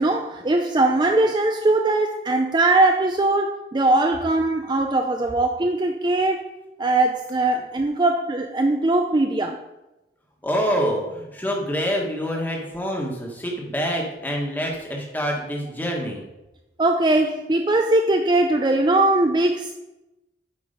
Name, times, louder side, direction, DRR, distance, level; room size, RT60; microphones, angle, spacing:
voice 1, 0.0-6.5 6.8-9.6 10.8-10.9 16.8-19.8, right 2 dB, 25° right, 0.4 m, -20 dB
voice 2, 10.4-16.2, equal, 10° left, 1.5 m, -26 dB
8.6 x 4.8 x 5.2 m
head